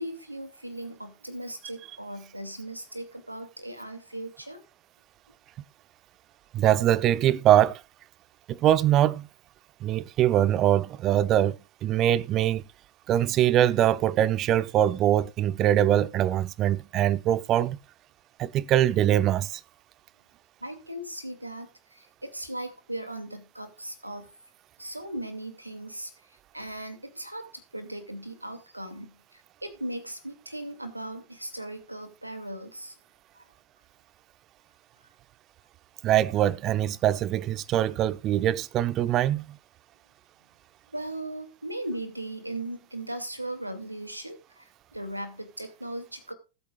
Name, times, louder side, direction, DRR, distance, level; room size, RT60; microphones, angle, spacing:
voice 1, 0.0-4.6 20.6-24.3 24.8-32.9 33.3-33.5 40.9-46.3, right 1 dB, 85° right, 2.4 m, -38 dB
voice 2, 6.5-7.8 8.5-9.3 9.8-11.5 11.8-12.6 13.1-17.8 18.4-19.5 36.0-39.4, right 11 dB, 35° right, 0.7 m, -23 dB
20.5 x 8.5 x 2.4 m
figure-of-eight pair, 90°, 0 cm